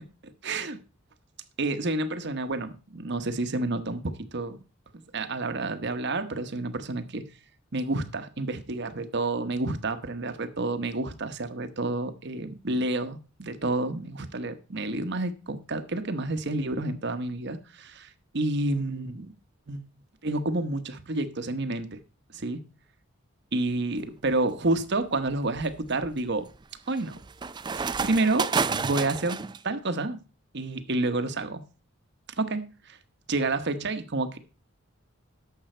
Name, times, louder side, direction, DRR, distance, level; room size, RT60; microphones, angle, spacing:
voice 1, 0.2-0.8 1.6-4.6 4.9-7.3 7.7-19.3 19.7-19.8 20.2-22.0 22.3-22.7 23.5-26.5 26.9-27.2 27.7-30.2 30.5-31.6 32.4-33.0 33.3-34.4, right 2 dB, 55° right, 1.1 m, -29 dB
sound 1, 24.0-24.4 25.0-29.6, right 5 dB, 20° right, 0.4 m, -31 dB
11.5 x 7.3 x 4.4 m
head